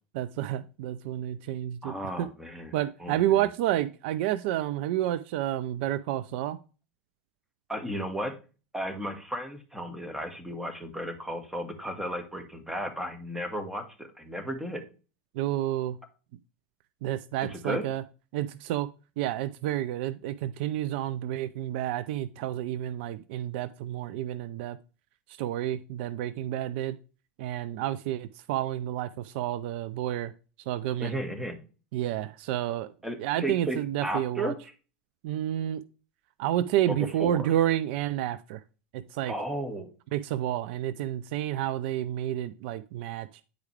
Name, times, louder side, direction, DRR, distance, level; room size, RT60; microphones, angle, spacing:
voice 1, 0.1-2.3 2.7-6.6 15.3-16.0 17.0-18.0 18.3-18.9 19.2-24.8 25.4-27.0 27.4-30.3 30.7-31.2 31.9-32.9 33.2-34.5 35.2-35.8 36.4-38.6 38.9-39.3 40.1-43.3, right 13 dB, 65° right, 15 dB, 0.4 m, -30 dB
voice 2, 1.8-2.7 3.0-3.1 7.7-8.3 8.7-14.8 17.5-17.8 31.0-31.5 33.0-34.6 36.9-37.4 39.3-39.9, equal, 5° right, 6 dB, 1.7 m, -34 dB
9.4 x 4.9 x 3.2 m, 0.34 s
hypercardioid pair, 90°, 6 cm